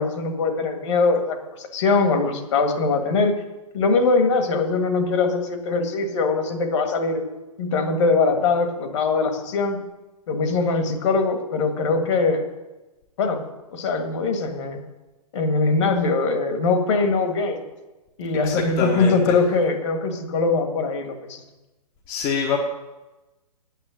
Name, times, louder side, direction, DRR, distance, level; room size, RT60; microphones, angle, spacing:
voice 1, 0.0-3.4 3.7-7.2 7.6-9.8 10.3-12.4 13.2-13.5 13.7-14.8 15.3-17.6 18.2-21.4, left 3 dB, 50° left, 5 dB, 1.9 m, -22 dB
voice 2, 18.4-19.3 22.1-22.6, left 6 dB, 30° left, 1 dB, 1.3 m, -25 dB
9.2 x 7.3 x 8.9 m, 1.1 s
figure-of-eight pair, 120°, 20 cm